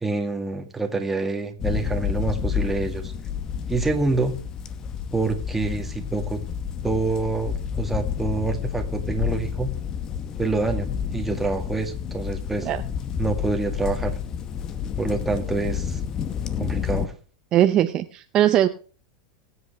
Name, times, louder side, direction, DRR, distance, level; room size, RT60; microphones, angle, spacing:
voice 1, 0.0-3.1 3.7-4.4 5.1-6.4 6.8-9.7 10.4-12.7 13.2-14.2 15.0-16.0 16.6-17.1, right 3 dB, 10° right, 3 dB, 1.9 m, -27 dB
sound 1, 1.6-17.1, left 8 dB, 30° left, 1.0 m, -29 dB
voice 2, 17.5-18.7, right 12 dB, 35° right, 9 dB, 0.7 m, -20 dB
22.5 x 8.0 x 3.4 m, 0.39 s
supercardioid pair, 130°, 2 cm